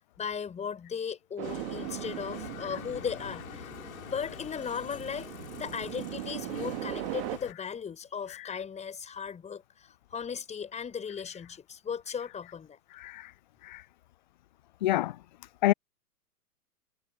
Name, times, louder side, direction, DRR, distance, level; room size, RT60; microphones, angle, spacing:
voice 1, 0.2-3.7 4.1-5.3 5.6-12.8, left 7 dB, 15° left, 5.7 m, -37 dB
Bicycle, 1.4-7.5, left 9 dB, 60° left, 3.9 m, -45 dB
sound 1, 1.4-7.4, right 22 dB, 35° right, 2.0 m, -39 dB
voice 2, 12.9-13.3 13.6-13.8 14.8-15.2 15.6-15.7, left 15 dB, 30° left, 0.5 m, -28 dB
figure-of-eight pair, 105°, 47 cm